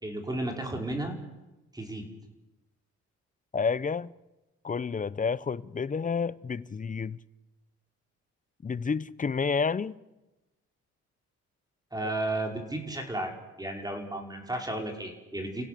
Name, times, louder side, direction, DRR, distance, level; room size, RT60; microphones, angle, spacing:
voice 1, 0.0-1.2 1.7-2.1 11.9-13.3 13.6-15.6, right 1 dB, 15° right, 5.1 m, -33 dB
voice 2, 3.5-4.1 4.6-7.2 8.6-10.0, left 5 dB, 25° left, 0.8 m, -30 dB
30.0 x 16.5 x 6.8 m
cardioid pair, 90°, 30 cm